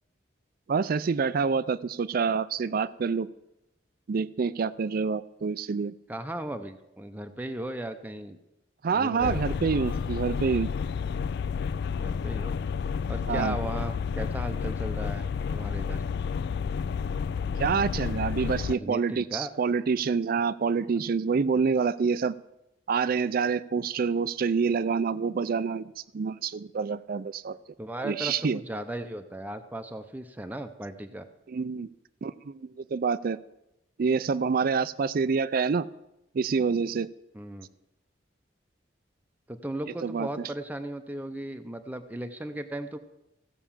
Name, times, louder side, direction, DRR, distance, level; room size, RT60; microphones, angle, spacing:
voice 1, 0.7-3.3 4.1-5.9 8.8-10.7 13.3-13.6 17.6-22.3 22.9-27.6 28.0-28.6 31.5-31.9 32.2-33.4 34.0-35.9 36.3-37.1 40.0-40.3, right 5 dB, 55° right, 17 dB, 0.4 m, -27 dB
voice 2, 6.1-8.4 8.9-9.4 12.0-12.6 13.1-16.0 18.4-19.5 27.8-31.3 37.3-37.7 39.5-43.0, right 1 dB, 10° right, 7 dB, 0.6 m, -36 dB
sound 1, 9.2-18.8, left 6 dB, 60° left, 0.3 m, -30 dB
16.0 x 5.7 x 7.2 m, 0.88 s
head